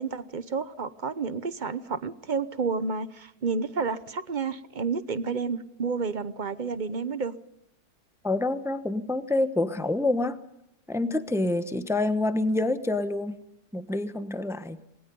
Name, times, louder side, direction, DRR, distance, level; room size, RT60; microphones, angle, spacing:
voice 1, 0.0-7.3, right 5 dB, 35° right, 14 dB, 0.9 m, -30 dB
voice 2, 8.2-10.4 10.9-13.4 13.7-14.8, left 2 dB, ahead, 11 dB, 0.9 m, -27 dB
28.0 x 20.5 x 5.4 m, 0.79 s
omnidirectional pair, 1.7 m